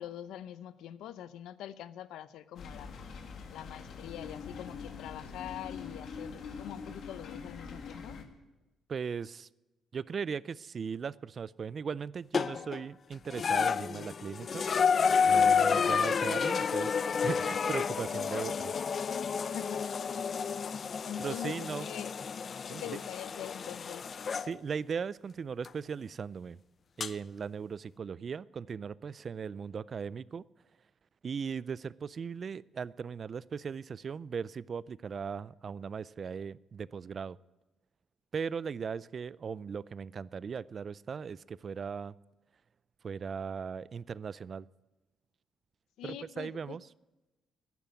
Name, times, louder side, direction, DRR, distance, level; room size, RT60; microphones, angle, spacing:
voice 1, 0.0-3.0 3.5-8.2 15.7-16.2 19.5-20.0 21.0-22.1 22.7-24.1 46.0-46.8, left 11 dB, 85° left, 16 dB, 0.7 m, -44 dB
sound 1, 2.6-8.2, left 5 dB, 65° left, 1.8 m, -44 dB
voice 2, 8.9-9.5 9.9-14.6 15.3-18.7 21.2-21.9 22.7-22.8 24.4-26.6 27.0-30.4 31.2-37.4 38.3-42.1 43.0-44.7 46.0-46.8, right 6 dB, 45° right, 21 dB, 0.4 m, -38 dB
sound 2, 12.3-12.8 13.3-24.5 25.6-25.7 27.0-27.1, left 6 dB, 45° left, 0.5 m, -30 dB
10.5 x 10.5 x 9.3 m, 1.1 s
cardioid pair, 90°, 0 cm